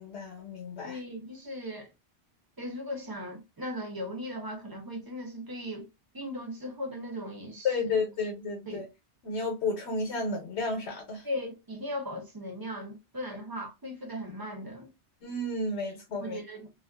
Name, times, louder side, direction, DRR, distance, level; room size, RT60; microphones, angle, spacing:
voice 1, 0.0-1.0 7.6-8.9 9.2-11.2 15.2-16.4, left 3 dB, 90° left, 1.0 m, -32 dB
voice 2, 0.8-1.9 2.6-5.9 6.1-8.0 8.7-8.9 11.2-14.9 15.8-15.9 16.2-16.7, left 1 dB, 30° right, 0.5 m, -38 dB
2.3 x 2.3 x 2.2 m
omnidirectional pair, 1.1 m